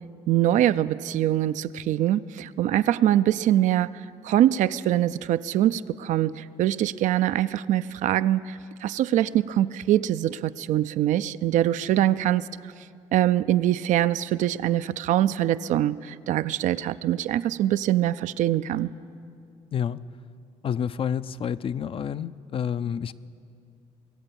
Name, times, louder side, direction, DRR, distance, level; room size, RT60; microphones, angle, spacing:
voice 1, 0.3-3.9 4.2-12.5 13.1-18.9, right 12 dB, 70° right, 14 dB, 0.4 m, -23 dB
voice 2, 19.7-20.0 20.6-23.1, left 8 dB, 45° left, 15 dB, 0.4 m, -29 dB
21.5 x 8.1 x 7.0 m, 2.5 s
supercardioid pair, 75°, 13 cm